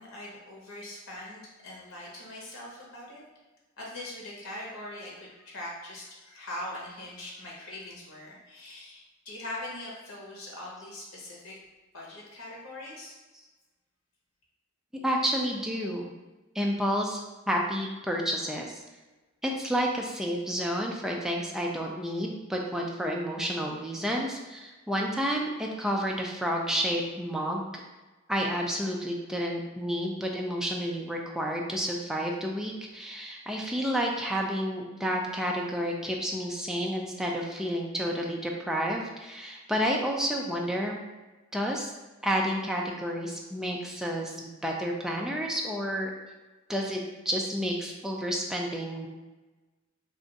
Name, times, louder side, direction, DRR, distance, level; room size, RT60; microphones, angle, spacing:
voice 1, 0.0-3.2 3.8-11.5 11.9-13.1, left 1 dB, 90° left, -4 dB, 1.0 m, -42 dB
voice 2, 15.0-16.1 16.6-17.2 17.5-18.8 19.4-27.7 28.3-41.0 41.5-41.9 42.2-46.1 46.7-49.1, equal, 5° right, -1 dB, 0.3 m, -30 dB
2.5 x 2.4 x 3.9 m, 1.2 s
head